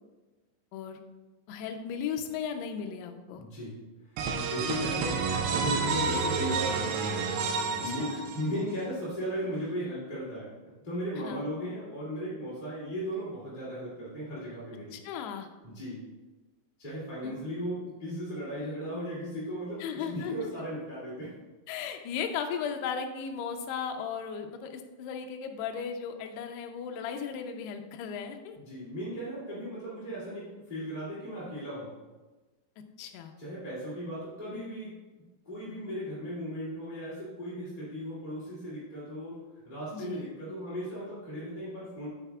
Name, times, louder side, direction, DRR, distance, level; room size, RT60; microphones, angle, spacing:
voice 1, 1.5-3.4 7.9-8.2 11.2-11.5 14.9-15.5 17.2-17.4 19.8-20.5 21.7-28.6 33.0-33.3 39.9-40.3, left 7 dB, 80° left, 5 dB, 2.6 m, -36 dB
voice 2, 3.3-3.8 4.1-7.1 7.8-10.5 10.8-15.0 15.6-16.0 16.8-21.3 28.5-31.9 33.4-34.9 35.4-39.4 39.6-42.1, equal, 15° left, -10 dB, 1.7 m, -36 dB
sound 1, 4.2-8.8, right 5 dB, 80° right, 2.8 m, -30 dB
9.1 x 9.1 x 2.4 m, 1.2 s
omnidirectional pair, 5.2 m